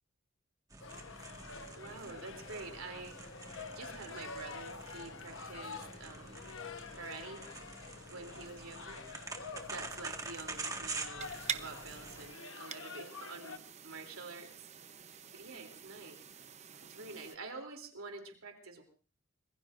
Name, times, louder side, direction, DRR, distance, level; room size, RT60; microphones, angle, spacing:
sound 1, 0.7-12.3, right 3 dB, 15° right, 1.6 m, -46 dB
sound 2, 0.8-13.6, left 4 dB, 70° left, 1.1 m, -48 dB
voice 1, 1.8-3.2 3.7-6.4 6.9-7.5 8.1-9.0 9.7-14.7 15.3-16.2 16.8-18.8, right 3 dB, 85° right, 3 dB, 3.1 m, -47 dB
sound 3, 11.2-17.4, right 8 dB, 30° right, 0.7 m, -46 dB
25.5 x 20.5 x 2.6 m, 0.39 s
head